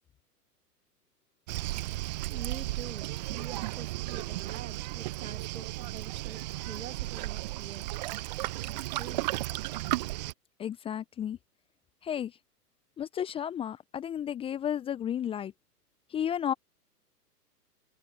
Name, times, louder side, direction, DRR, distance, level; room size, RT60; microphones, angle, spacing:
Waves surf, 1.5-10.3, right 18 dB, 25° right, 0.9 m, -34 dB
voice 1, 2.3-7.9 8.6-9.3, right 7 dB, 55° right, 2.6 m, -45 dB
voice 2, 10.6-11.4 12.0-12.4 13.0-15.5 16.1-16.5, left 9 dB, 10° left, 1.2 m, -33 dB
figure-of-eight pair, 115°, 48 cm